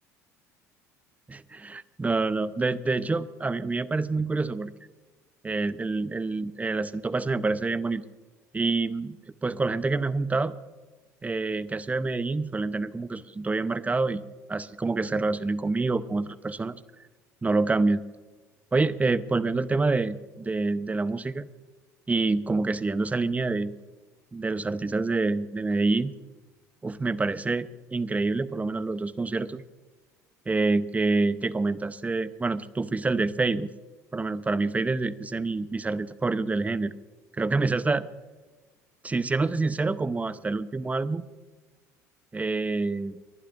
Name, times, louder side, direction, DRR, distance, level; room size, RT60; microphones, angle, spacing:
voice 1, 1.3-4.7 5.4-8.0 8.5-9.2 9.4-10.6 11.2-14.2 14.5-16.8 17.4-18.0 18.7-21.4 22.1-23.7 24.3-26.2 26.8-29.6 30.5-33.7 34.1-36.9 37.4-38.1 39.0-41.2 42.3-43.2, right 3 dB, 15° right, 15 dB, 0.7 m, -27 dB
29.5 x 11.5 x 2.5 m, 1.2 s
hypercardioid pair, 65°, 9 cm